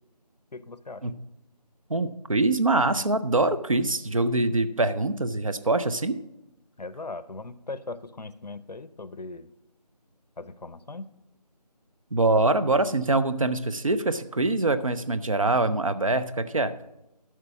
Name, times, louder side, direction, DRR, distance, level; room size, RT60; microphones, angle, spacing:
voice 1, 0.5-1.1 6.8-9.5 10.4-11.1, left 3 dB, 75° left, 15 dB, 0.7 m, -39 dB
voice 2, 1.9-6.2 12.1-16.7, right 2 dB, 50° right, 11 dB, 0.6 m, -24 dB
11.0 x 6.0 x 5.9 m, 0.90 s
figure-of-eight pair, 175°, 21 cm